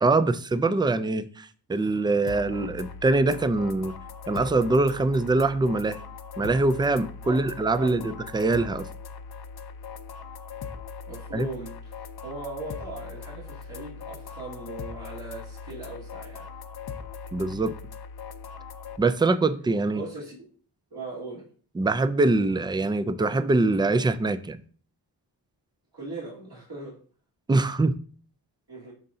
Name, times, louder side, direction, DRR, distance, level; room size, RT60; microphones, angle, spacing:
voice 1, 0.0-4.0 4.3-6.0 6.4-8.9 11.3-11.5 17.3-17.7 19.0-20.0 21.8-24.6 27.5-27.9, right 2 dB, 10° right, 0.4 m, -23 dB
sound 1, 2.3-19.0, left 6 dB, 65° left, 0.7 m, -40 dB
voice 2, 7.8-8.2 11.1-16.5 19.9-20.5 20.9-21.5 25.9-27.0 28.7-28.9, right 2 dB, 60° right, 2.5 m, -39 dB
11.0 x 3.8 x 2.7 m
wide cardioid pair, 85°, 42 cm